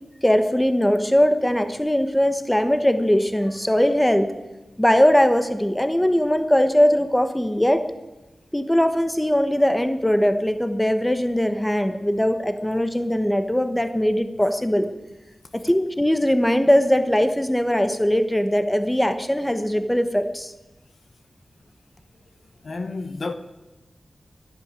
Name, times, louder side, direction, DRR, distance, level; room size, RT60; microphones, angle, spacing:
voice 1, 0.2-4.3 4.8-7.8 8.5-14.9 15.5-20.5, equal, 10° left, 1.2 m, -20 dB
voice 2, 22.6-23.3, left 3 dB, 55° left, 1.1 m, -30 dB
12.0 x 11.0 x 9.8 m
wide cardioid pair, 115°, 0 cm